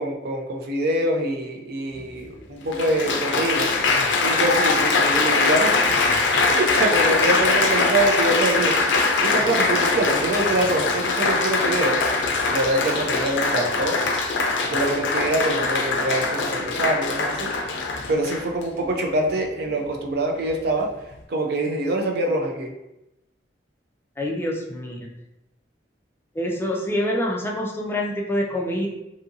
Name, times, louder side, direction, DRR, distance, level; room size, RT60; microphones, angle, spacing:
voice 1, 0.0-3.7 3.9-6.0 6.5-8.9 9.2-12.0 12.5-14.0 14.7-17.5 18.1-22.7, right 1 dB, 60° right, 2 dB, 0.5 m, -25 dB
Applause, 2.0-2.1 2.7-18.6 19.4-19.7, left 3 dB, 80° left, 0.4 m, -22 dB
voice 2, 24.2-25.1 26.4-28.9, left 1 dB, 15° left, -1 dB, 0.3 m, -26 dB
2.7 x 2.5 x 2.6 m, 0.90 s
head